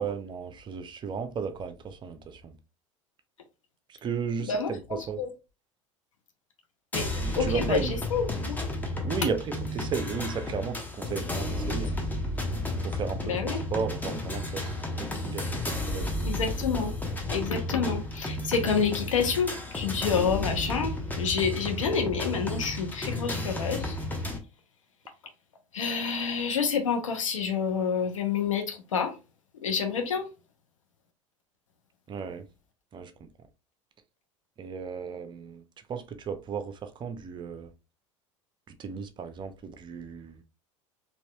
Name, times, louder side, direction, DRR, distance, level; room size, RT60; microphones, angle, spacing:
voice 1, 0.0-2.6 3.9-5.2 7.2-8.0 9.0-9.4 9.7-12.0 12.8-16.1 32.1-32.5 32.9-33.3 34.6-35.6 35.9-37.7 38.7-40.4, right 6 dB, 30° right, 0.6 m, -34 dB
voice 2, 4.5-5.3 6.9-8.6 13.2-13.6 16.2-16.9 17.3-24.0 25.7-29.2 29.6-30.3, left 6 dB, 75° left, 0.7 m, -28 dB
sound 1, 6.9-24.4, left 1 dB, 10° left, 0.8 m, -32 dB
4.1 x 2.8 x 2.2 m
figure-of-eight pair, 75°, 17 cm